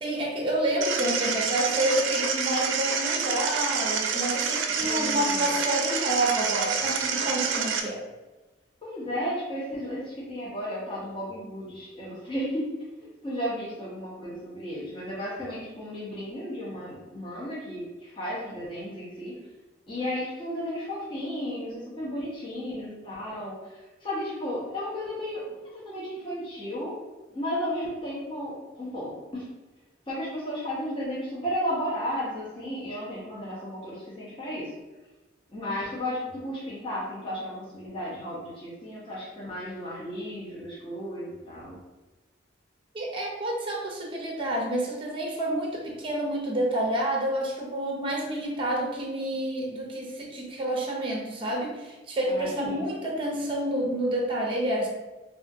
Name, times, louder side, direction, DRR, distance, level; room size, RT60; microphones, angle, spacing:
voice 1, 0.0-8.0 42.9-54.9, right 1 dB, 25° right, -1 dB, 0.6 m, -29 dB
sound 1, 0.8-7.8, right 6 dB, 85° right, 0.4 m, -28 dB
voice 2, 4.8-5.5 8.8-12.7 13.2-19.4 19.9-25.5 25.7-26.9 27.3-29.5 30.1-34.7 35.5-41.8 52.3-52.8, equal, 25° left, -7 dB, 0.8 m, -34 dB
3.4 x 2.5 x 2.6 m, 1.2 s
head